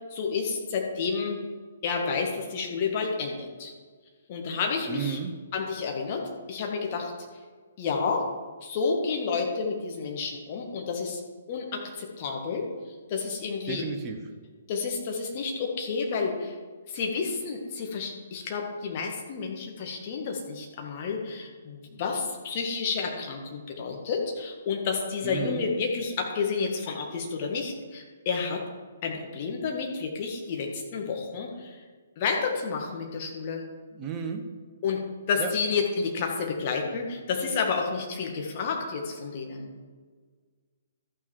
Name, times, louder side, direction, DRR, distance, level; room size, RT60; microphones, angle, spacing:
voice 1, 0.1-1.4 1.8-3.7 4.3-5.2 5.5-7.1 7.8-8.3 8.6-11.2 11.5-12.7 13.1-13.8 14.7-16.6 16.9-28.6 29.0-31.8 32.2-33.6 34.8-35.0 35.3-39.7, left 5 dB, 35° left, 1 dB, 1.8 m, -30 dB
voice 2, 4.9-5.3 13.7-14.2 25.2-25.6 33.9-34.4 35.4-35.5, right 7 dB, 20° right, 4 dB, 1.2 m, -33 dB
13.5 x 6.1 x 4.6 m, 1.5 s
figure-of-eight pair, 125°, 0 cm